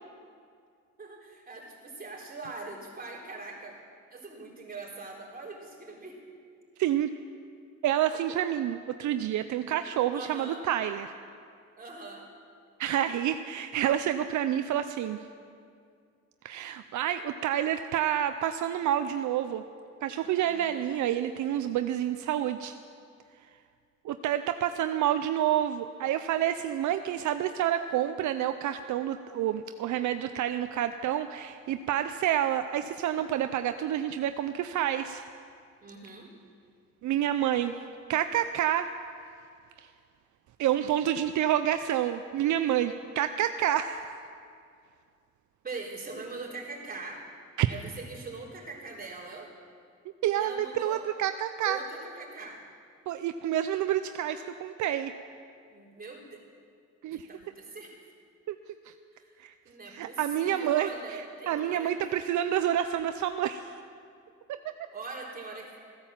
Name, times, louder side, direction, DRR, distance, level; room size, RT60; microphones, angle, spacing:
voice 1, 1.0-3.8 4.1-6.2 8.1-8.2 10.1-10.6 11.8-12.3 20.4-20.9 35.8-36.3 45.6-47.2 47.6-49.5 50.3-51.0 51.6-52.6 55.7-56.5 57.1-58.0 59.1-59.4 59.6-62.3 64.9-65.7, right 3 dB, 30° right, -3 dB, 3.8 m, -42 dB
voice 2, 6.8-7.1 7.8-11.1 12.8-15.2 16.4-19.6 20.0-22.8 24.0-35.2 37.0-37.8 38.1-38.9 39.8-39.9 40.6-44.1 47.6-47.7 50.2-51.8 53.1-55.1 57.0-57.3 58.5-58.6 58.9-59.0 59.4-59.5 59.9-63.7, right 11 dB, 75° right, 9 dB, 0.6 m, -28 dB
15.5 x 10.5 x 7.4 m, 2.3 s
cardioid pair, 90°, 30 cm